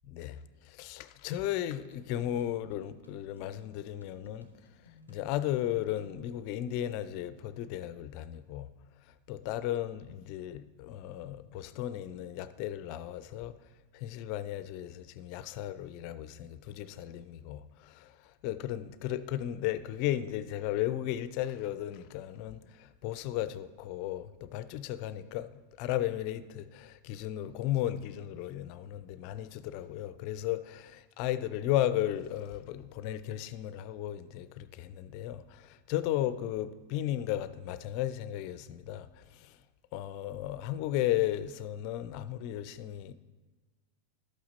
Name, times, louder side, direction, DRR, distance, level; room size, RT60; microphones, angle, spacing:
voice 1, 0.0-4.5 5.1-8.7 9.3-13.6 13.9-18.2 18.4-39.5 39.9-43.1, left 12 dB, 45° left, 0.4 m, -35 dB
sound 1, 1.9-6.4, left 2 dB, 90° right, 0.9 m, -57 dB
11.5 x 8.5 x 4.1 m
figure-of-eight pair, 90°, 0 cm